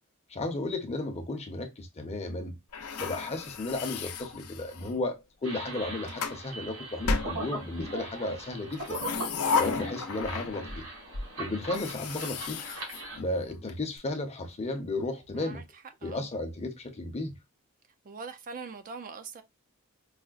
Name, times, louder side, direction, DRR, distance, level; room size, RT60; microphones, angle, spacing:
voice 1, 0.3-2.6 3.0-9.0 9.6-10.8 11.4-12.6 13.2-15.6 16.0-17.3, left 2 dB, 30° left, 0.7 m, -34 dB
sound 1, 2.7-5.0 5.7-6.4 7.0-8.0 8.7-10.8 11.1-11.2 11.6-13.7, left 4 dB, 85° left, 0.6 m, -33 dB
sound 2, 5.4-13.2, right 2 dB, 75° right, 1.8 m, -40 dB
voice 2, 15.3-16.3 18.0-19.4, right 4 dB, 40° right, 0.4 m, -43 dB
4.8 x 2.1 x 2.3 m
head